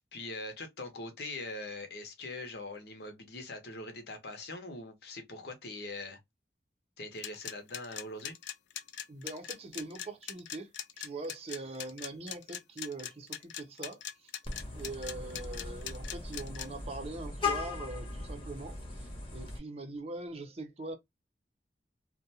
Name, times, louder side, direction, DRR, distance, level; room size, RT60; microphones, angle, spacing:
voice 1, 0.1-6.2 7.0-8.3, left 2 dB, 65° left, 0.8 m, -42 dB
sound 1, 7.2-16.7, left 10 dB, 90° left, 0.4 m, -41 dB
voice 2, 9.1-10.7 11.0-14.3 14.7-21.0, right 2 dB, 35° right, 0.6 m, -42 dB
Vehicle horn car horn honking, 14.4-19.6, left 4 dB, 30° left, 0.8 m, -38 dB
2.4 x 2.2 x 2.7 m
head